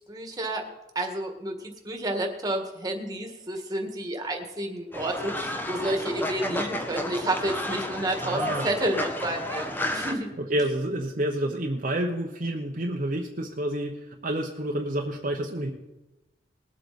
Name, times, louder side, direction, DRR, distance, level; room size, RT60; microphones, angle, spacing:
voice 1, 0.1-0.7 1.0-10.3, right 1 dB, 20° right, 3 dB, 1.7 m, -30 dB
Fowl, 4.9-10.1, left 1 dB, 10° left, 1.1 m, -32 dB
voice 2, 8.2-8.7 10.5-15.7, right 1 dB, 45° right, 1 dB, 0.9 m, -29 dB
20.0 x 8.1 x 4.2 m, 0.99 s
head